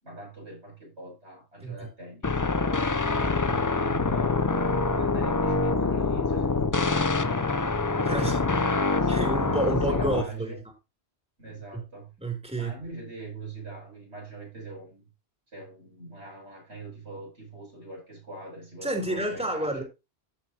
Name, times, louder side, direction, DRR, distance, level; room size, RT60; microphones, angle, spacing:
voice 1, 0.0-2.6 3.1-7.9 8.2-8.4 8.9-10.6 11.4-12.1 12.6-15.1 15.5-19.8, right 3 dB, 85° right, 8.1 m, -42 dB
sound 1, 2.2-10.2, left 3 dB, 25° left, 0.5 m, -25 dB
voice 2, 8.1-8.4 9.1-10.6 11.7-11.8 12.2-12.7 18.8-19.8, right 2 dB, 5° right, 3.2 m, -29 dB
15.0 x 6.6 x 2.9 m
omnidirectional pair, 1.1 m